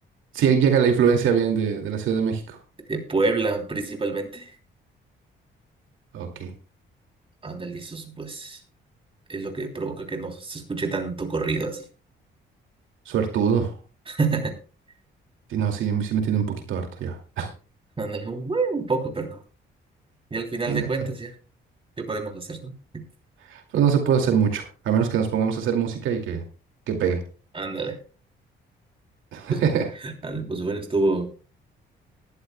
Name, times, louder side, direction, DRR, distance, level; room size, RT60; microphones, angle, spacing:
voice 1, 0.3-2.6 6.1-6.5 13.1-13.7 15.5-17.5 20.7-20.9 23.5-26.4 26.9-27.2 29.3-29.9, right 7 dB, 80° right, 4 dB, 2.4 m, -23 dB
voice 2, 2.9-4.5 7.4-8.6 9.3-11.8 14.1-14.5 18.0-19.4 20.3-21.3 22.0-23.0 27.5-28.0 29.5-29.6 30.0-31.3, right 3 dB, 25° right, 3 dB, 3.2 m, -28 dB
19.5 x 12.0 x 2.2 m, 0.35 s
cardioid pair, 90°, 20 cm